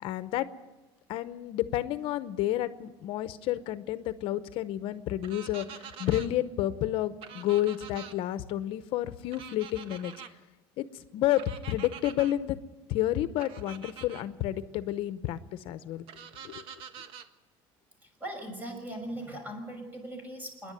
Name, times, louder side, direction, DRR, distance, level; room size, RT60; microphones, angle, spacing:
voice 1, 0.0-0.5 1.1-10.1 10.8-10.9 11.1-12.6 12.9-15.4 15.6-16.0 16.4-16.5, left 13 dB, 65° left, 12 dB, 0.8 m, -30 dB
sound 1, 5.2-6.3 7.2-8.1 9.3-10.3 11.4-12.3 13.4-14.2 16.1-17.3, right 7 dB, 60° right, 1.4 m, -45 dB
voice 2, 18.0-20.7, right 1 dB, 15° right, 4 dB, 6.3 m, -39 dB
26.0 x 11.0 x 9.3 m, 1.2 s
cardioid pair, 135°, 10 cm